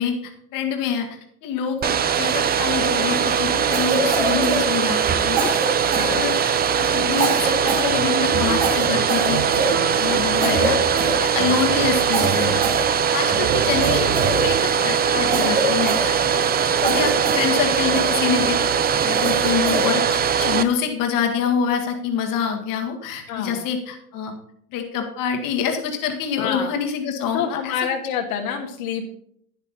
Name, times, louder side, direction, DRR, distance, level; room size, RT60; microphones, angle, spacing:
voice 1, 0.0-5.0 5.2-5.5 5.8-9.4 9.7-10.8 11.2-12.6 12.9-14.1 14.4-16.4 16.8-18.6 19.0-24.3 24.7-27.9, left 7 dB, 45° left, 4 dB, 1.9 m, -26 dB
Domestic sounds home sounds, 1.8-20.6, right 7 dB, 20° right, 0.7 m, -21 dB
Cough, 3.7-5.1 5.4-6.6 7.1-7.9 8.2-8.3 8.6-10.1 10.4-10.7 11.0-11.6 12.1-13.3 13.8-14.9 15.3-16.5 16.8-17.5 17.9-18.5 19.0-19.9, right 3 dB, 70° right, 4.0 m, -26 dB
voice 2, 6.0-6.3 23.3-23.6 26.4-26.7 27.3-29.0, left 8 dB, 65° left, 2 dB, 2.0 m, -27 dB
sound 1, 7.9-12.8 13.3-14.8, right 6 dB, 35° right, 4.3 m, -29 dB
11.0 x 10.5 x 4.1 m, 0.67 s
hypercardioid pair, 85°, 45 cm